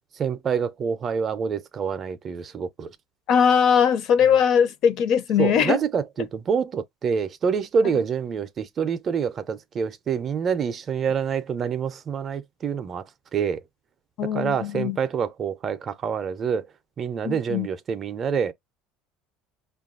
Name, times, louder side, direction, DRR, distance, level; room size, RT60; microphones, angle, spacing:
voice 1, 0.2-2.9 5.4-13.0 13.3-13.6 14.2-16.7 17.0-18.5, right 6 dB, 30° right, 0.4 m, -26 dB
voice 2, 3.3-5.8 14.2-15.0 17.2-17.7, left 7 dB, 50° left, 0.5 m, -20 dB
5.3 x 2.3 x 2.3 m
cardioid pair, 145°, 0 cm